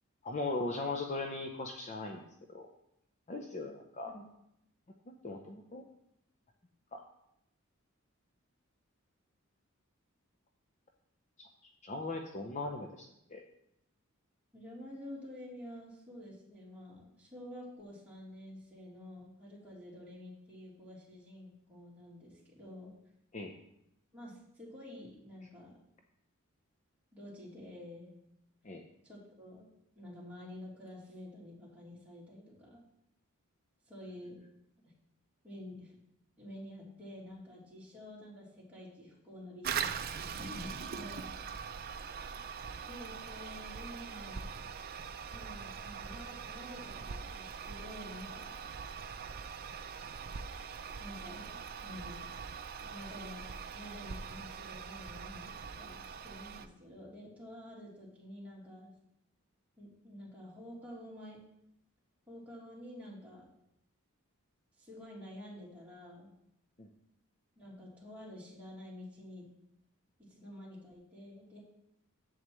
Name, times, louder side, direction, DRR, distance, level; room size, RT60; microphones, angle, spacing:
voice 1, 0.2-2.2 2.5-2.7 3.3-4.1 5.2-5.8 6.9-7.0 11.4-11.5 11.8-13.4 23.3-23.5 28.6-28.8 66.8-66.9, left 2 dB, 35° left, 3 dB, 0.6 m, -39 dB
voice 2, 14.5-22.9 24.1-25.7 27.1-28.1 29.0-29.7 30.0-32.8 33.9-34.4 34.8-34.9 35.4-35.9 36.4-41.3 42.8-44.5 45.3-48.6 51.0-52.3 52.9-53.4 53.7-58.9 59.8-61.4 62.3-63.4 64.8-66.3 67.6-69.5 70.3-71.6, left 1 dB, 5° right, -7 dB, 3.2 m, -49 dB
Toilet flush, 39.6-56.7, right 6 dB, 45° right, 0.5 m, -42 dB
11.0 x 8.0 x 3.1 m, 0.79 s
head